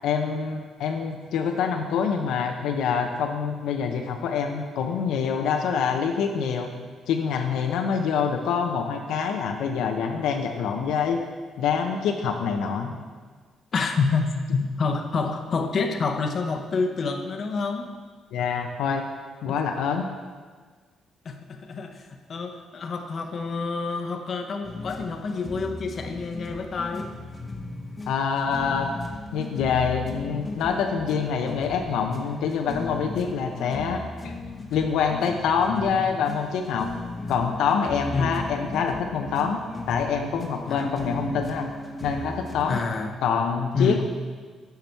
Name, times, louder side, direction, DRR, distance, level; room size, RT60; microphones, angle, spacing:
voice 1, 0.0-6.7 7.1-11.2 11.6-12.9 18.3-19.1 19.4-20.1 28.1-28.9 29.3-34.3 34.7-36.9 37.3-39.6 39.9-41.7 42.0-42.8 43.2-44.0, left 6 dB, 85° left, 3 dB, 0.6 m, -26 dB
voice 2, 13.7-17.9 19.5-19.6 21.2-27.1 38.1-38.3 40.7-40.9 42.7-43.1 43.7-44.0, left 4 dB, 50° left, 5 dB, 0.8 m, -28 dB
sound 1, 24.6-42.7, left 2 dB, 25° left, 0.9 m, -37 dB
9.1 x 5.8 x 4.5 m, 1.5 s
cardioid pair, 90°, 0 cm